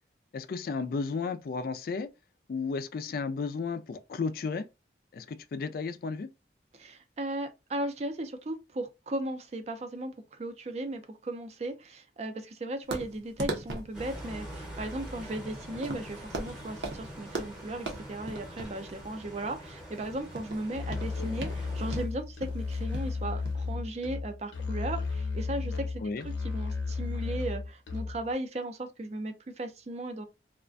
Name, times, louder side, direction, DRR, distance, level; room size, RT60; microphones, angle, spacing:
voice 1, 0.3-2.1 2.5-4.6 5.1-6.3 26.0-26.3, left 4 dB, 55° left, 0.3 m, -33 dB
voice 2, 6.7-26.0 26.4-30.3, right 1 dB, 35° right, 0.4 m, -36 dB
sound 1, 12.9-23.5, right 2 dB, 75° right, 0.6 m, -40 dB
sound 2, 13.9-22.1, equal, 5° right, 0.8 m, -44 dB
Musical instrument, 20.7-28.3, left 4 dB, 90° left, 0.7 m, -34 dB
2.4 x 2.1 x 2.4 m
head